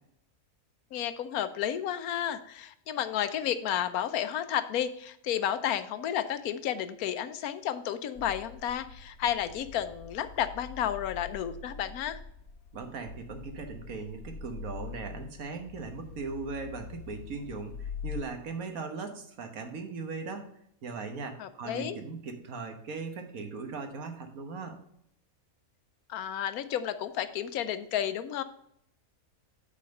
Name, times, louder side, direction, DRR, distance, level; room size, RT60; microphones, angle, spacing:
voice 1, 0.9-12.2 21.4-22.0 26.1-28.4, left 10 dB, 80° left, 12 dB, 1.1 m, -32 dB
sound 1, 8.2-18.2, left 7 dB, 50° left, 1.1 m, -44 dB
voice 2, 12.7-20.5 20.8-24.8, right 4 dB, 70° right, 5 dB, 1.5 m, -39 dB
8.5 x 4.2 x 5.2 m, 0.71 s
omnidirectional pair, 1.5 m